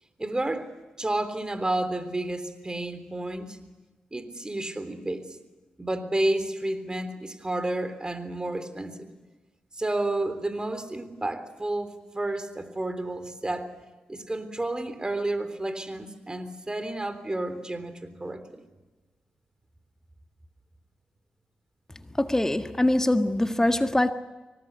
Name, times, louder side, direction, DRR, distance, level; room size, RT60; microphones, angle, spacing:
voice 1, 0.2-0.7 1.0-3.6 4.1-5.4 5.8-9.1 9.7-13.7 14.1-18.6, right 1 dB, 25° right, 3.5 m, -31 dB
voice 2, 22.2-24.1, left 1 dB, 15° left, 1.8 m, -23 dB
24.5 x 19.0 x 8.3 m
supercardioid pair, 45°, 3 cm